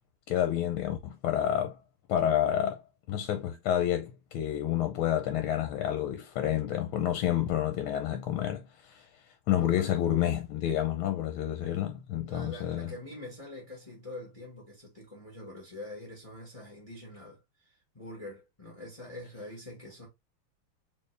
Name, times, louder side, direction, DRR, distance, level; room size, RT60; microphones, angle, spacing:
voice 1, 0.3-1.8 2.1-2.8 3.1-9.1 9.5-12.9, left 11 dB, 75° left, 1.6 m, -29 dB
voice 2, 9.6-9.9 12.2-17.4 17.9-20.1, left 1 dB, 15° left, 1.8 m, -45 dB
4.4 x 3.5 x 3.3 m
omnidirectional pair, 2.4 m